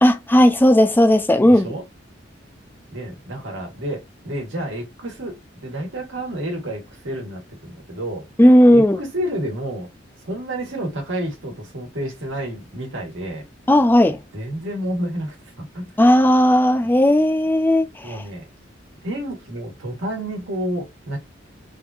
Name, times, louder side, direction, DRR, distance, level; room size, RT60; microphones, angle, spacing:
voice 1, 0.0-1.7 8.4-9.0 13.7-14.2 16.0-18.2, equal, 10° left, 0.4 m, -15 dB
voice 2, 1.4-1.8 2.9-8.3 8.7-9.9 10.2-13.4 14.3-15.9 18.0-18.5 19.0-21.2, right 1 dB, 85° right, 1.5 m, -30 dB
3.5 x 2.6 x 2.3 m
head